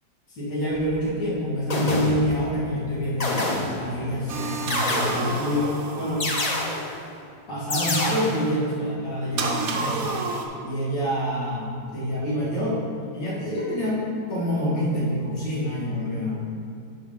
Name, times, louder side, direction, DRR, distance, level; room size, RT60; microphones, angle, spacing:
voice 1, 0.4-3.4 3.8-6.2 7.5-10.1 10.6-12.8 13.1-16.4, equal, 75° left, -6 dB, 2.5 m, -27 dB
sound 1, 0.7-0.9 1.7-2.5 3.2-4.0 4.7-5.5 6.2-7.0 7.7-8.5, left 2 dB, 55° left, 0.4 m, -27 dB
sound 2, 4.3-6.8 9.4-10.5, right 4 dB, 60° right, 1.1 m, -30 dB
11.0 x 4.7 x 3.7 m, 2.4 s
omnidirectional pair, 1.9 m